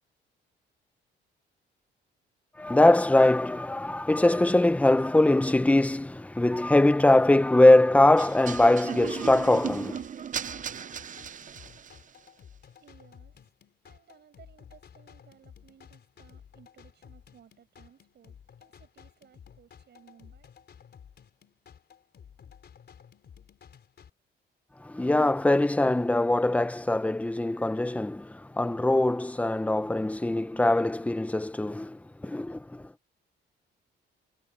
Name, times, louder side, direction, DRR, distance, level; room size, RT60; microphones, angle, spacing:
voice 1, 2.6-10.0 24.8-32.9, left 1 dB, 5° left, 1.1 m, -22 dB
sound 1, 8.2-12.1, right 8 dB, 40° right, 0.7 m, -36 dB
sound 2, 8.5-24.1, left 8 dB, 55° left, 4.4 m, -54 dB
voice 2, 12.8-20.5, right 8 dB, 60° right, 6.3 m, -59 dB
cardioid pair, 90°, 20 cm